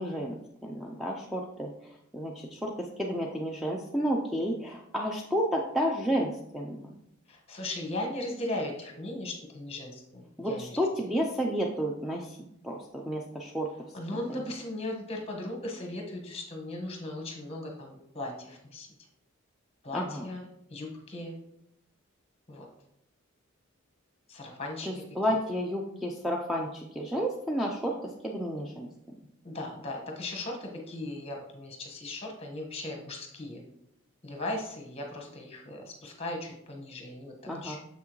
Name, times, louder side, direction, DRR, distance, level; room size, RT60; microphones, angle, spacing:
voice 1, 0.0-6.9 10.4-12.4 12.6-13.7 14.3-14.4 19.9-20.3 24.9-28.9 37.5-37.8, equal, ahead, -1 dB, 0.4 m, -31 dB
voice 2, 7.3-10.8 13.9-18.9 19.8-20.4 20.7-21.3 22.5-22.7 24.3-25.0 29.4-33.6 34.2-37.3 37.6-37.8, left 1 dB, 30° left, 1 dB, 1.3 m, -37 dB
7.1 x 5.9 x 3.1 m, 0.79 s
head